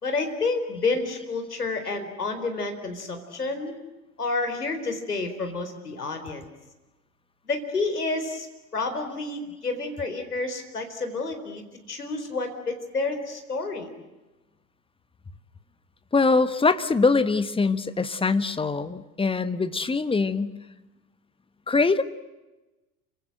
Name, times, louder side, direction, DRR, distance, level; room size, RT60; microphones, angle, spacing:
voice 1, 0.0-3.8 4.2-6.4 7.4-8.5 8.7-13.9, left 3 dB, 80° left, 6 dB, 4.4 m, -29 dB
voice 2, 16.1-20.6 21.7-22.0, left 4 dB, 10° left, 12 dB, 1.4 m, -23 dB
29.5 x 25.5 x 7.9 m, 1.1 s
figure-of-eight pair, 80°, 45 cm